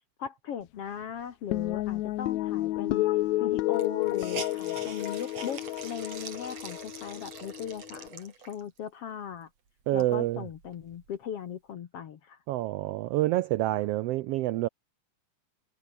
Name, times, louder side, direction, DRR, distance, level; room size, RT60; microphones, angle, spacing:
voice 1, 0.2-3.1 3.4-9.5 9.9-12.4, left 8 dB, 60° left, 2.2 m, -38 dB
sound 1, 1.5-8.1, left 16 dB, 80° left, 2.0 m, -31 dB
Hiss, 2.9-3.0 3.2-3.3 3.7-8.8 9.3-9.4 9.8-11.2, right 5 dB, 60° right, 4.8 m, -44 dB
voice 2, 9.9-10.4 12.5-14.7, right 16 dB, 85° right, 1.3 m, -27 dB
omnidirectional pair, 3.4 m